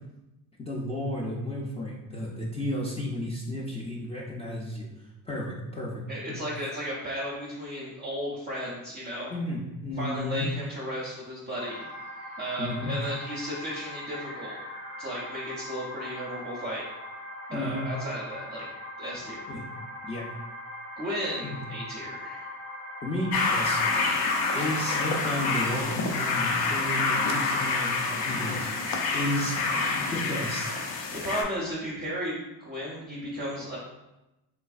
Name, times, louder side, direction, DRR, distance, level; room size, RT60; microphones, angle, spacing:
voice 1, 0.6-5.9 6.3-6.6 9.3-10.5 12.6-13.0 17.5-17.9 19.5-19.6 20.0-20.2 21.4-21.5 23.0-23.8 24.5-29.6 29.9-30.8, left 1 dB, 15° left, -5 dB, 0.4 m, -33 dB
voice 2, 6.1-9.3 10.0-11.9 12.4-14.6 15.0-16.8 17.5-18.6 19.0-19.4 21.0-22.6 31.2-33.8, equal, 25° right, -6 dB, 0.6 m, -34 dB
sound 1, 11.6-25.8, left 1 dB, 35° left, 0.8 m, -41 dB
sound 2, 23.3-31.4, left 3 dB, 65° left, 0.7 m, -27 dB
3.2 x 3.1 x 2.4 m, 0.98 s
cardioid pair, 105°, 41 cm